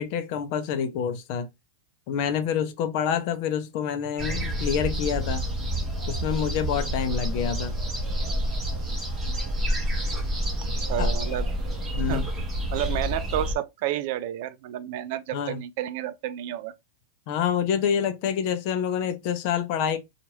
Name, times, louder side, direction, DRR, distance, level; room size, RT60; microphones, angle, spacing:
voice 1, 0.0-1.5 2.1-5.4 6.1-7.7 11.0-11.1 11.9-12.3 15.3-15.6 17.3-20.0, left 8 dB, 50° left, 0.6 m, -27 dB
sound 1, 4.2-13.6, equal, 15° right, 1.2 m, -28 dB
voice 2, 10.9-11.5 12.1-12.2 12.7-16.7, right 12 dB, 55° right, 0.4 m, -30 dB
2.9 x 2.4 x 3.0 m
supercardioid pair, 145°, 0 cm